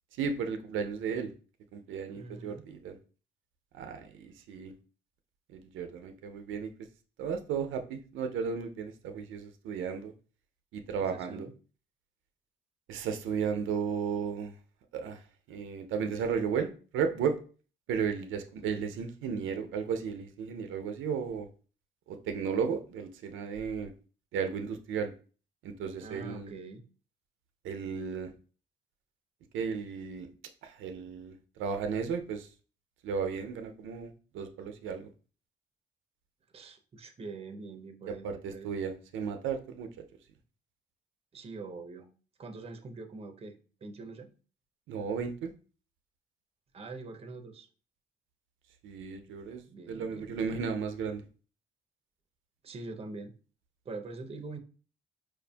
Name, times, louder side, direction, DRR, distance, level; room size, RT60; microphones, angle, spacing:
voice 1, 0.1-1.3 1.7-3.0 3.7-4.7 5.5-6.7 7.2-10.1 10.7-11.5 12.9-14.5 14.9-15.2 15.5-17.4 17.9-21.5 22.1-23.9 24.3-25.1 25.6-26.5 27.6-28.3 29.5-30.3 30.6-32.5 33.0-35.1 38.2-39.9 44.9-45.5 48.8-49.6 49.9-51.2, right 6 dB, 80° right, 6 dB, 0.4 m, -34 dB
voice 2, 2.1-2.7 11.1-11.5 18.7-18.8 26.0-26.8 36.5-38.7 41.3-42.1 42.4-44.3 46.7-47.7 49.7-50.6 52.6-53.3 53.9-54.6, right 3 dB, 30° right, 6 dB, 0.5 m, -44 dB
4.6 x 2.5 x 2.2 m, 0.38 s
cardioid pair, 90°, 20 cm